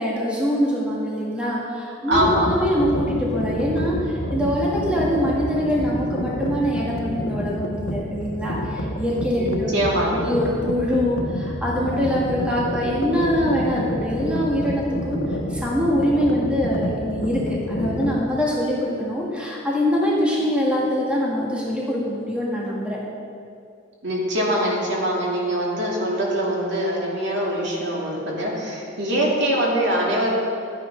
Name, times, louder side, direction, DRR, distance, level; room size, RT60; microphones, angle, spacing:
voice 1, 0.0-9.7 10.1-15.2 15.5-23.0, equal, 5° right, -5 dB, 1.9 m, -23 dB
sound 1, 2.1-18.2, equal, 85° left, 1.3 m, -29 dB
voice 2, 2.1-2.5 9.5-10.3 24.0-30.3, right 1 dB, 60° right, -3 dB, 2.6 m, -23 dB
13.5 x 9.7 x 5.3 m, 2.5 s
head